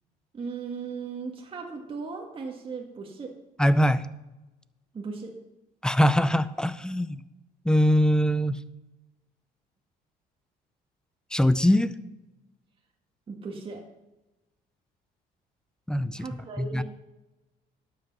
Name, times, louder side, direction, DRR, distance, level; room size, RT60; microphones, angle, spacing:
voice 1, 0.3-3.3 4.9-5.3 13.3-13.8 16.1-16.8, right 5 dB, 30° right, 1 dB, 1.7 m, -37 dB
voice 2, 3.6-4.1 5.8-7.2 7.6-8.6 11.3-11.9 15.9-16.2 16.6-16.8, equal, 5° left, 14 dB, 0.6 m, -22 dB
11.5 x 8.0 x 5.5 m, 1.0 s
cardioid pair, 110°, 17 cm